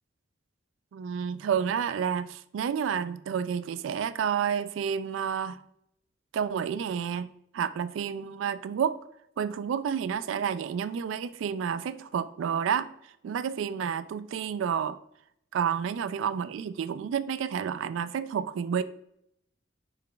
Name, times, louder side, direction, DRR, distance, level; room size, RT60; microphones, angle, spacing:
voice 1, 0.9-5.6 6.3-9.0 9.4-12.9 13.2-15.0 15.5-18.8, right 7 dB, 80° right, 0.3 m, -30 dB
5.0 x 4.7 x 2.2 m
head